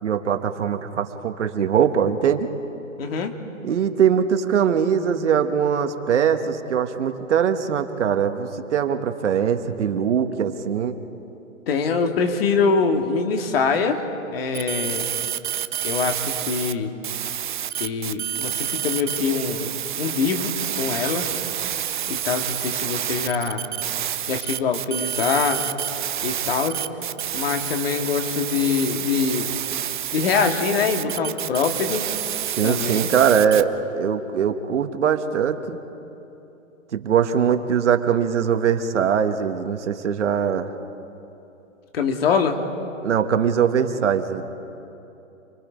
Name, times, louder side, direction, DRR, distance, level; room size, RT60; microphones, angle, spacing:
voice 1, 0.0-2.5 3.6-11.0 32.6-35.8 36.9-40.7 43.0-44.4, right 8 dB, 60° right, 7 dB, 1.6 m, -21 dB
voice 2, 3.0-3.3 11.7-14.0 14.3-15.1 15.8-16.9 17.8-21.3 22.1-23.6 24.3-25.6 26.2-26.8 27.3-29.5 30.1-32.1 32.6-33.1 41.9-42.6, left 5 dB, 45° left, 5 dB, 2.2 m, -24 dB
sound 1, 14.5-16.7 17.0-33.6, right 10 dB, 40° right, 0.6 m, -28 dB
29.0 x 22.5 x 5.2 m, 2.9 s
hypercardioid pair, 155°, 40 cm